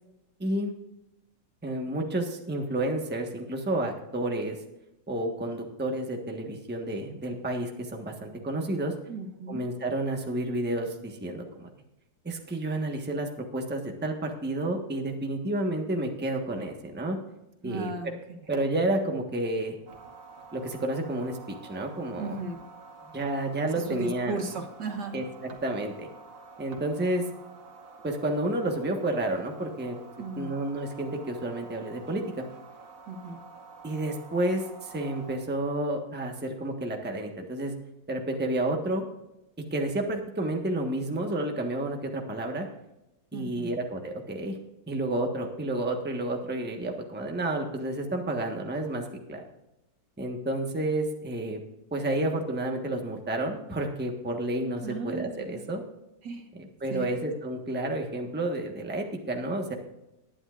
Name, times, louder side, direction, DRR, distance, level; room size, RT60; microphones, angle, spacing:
voice 1, 1.6-4.6 5.1-8.9 9.5-11.7 12.2-17.2 17.6-17.9 18.5-19.7 20.5-21.4 21.6-22.4 23.1-24.4 25.1-26.1 26.6-27.3 28.0-30.0 30.4-32.4 33.8-37.7 38.1-39.0 39.7-42.7 43.3-44.5 44.9-49.4 50.2-51.6 51.9-55.8 56.5-59.7, right 1 dB, 5° right, 2 dB, 1.2 m, -30 dB
voice 2, 9.1-9.6 17.6-18.4 22.2-22.6 23.8-25.2 30.2-30.5 33.1-33.4 43.3-43.7 54.8-55.6 56.2-56.5 56.9-57.2, right 3 dB, 70° right, 5 dB, 2.0 m, -36 dB
sound 1, 19.9-35.4, right 4 dB, 90° right, 2.3 m, -49 dB
19.5 x 10.0 x 2.5 m, 0.93 s
omnidirectional pair, 1.9 m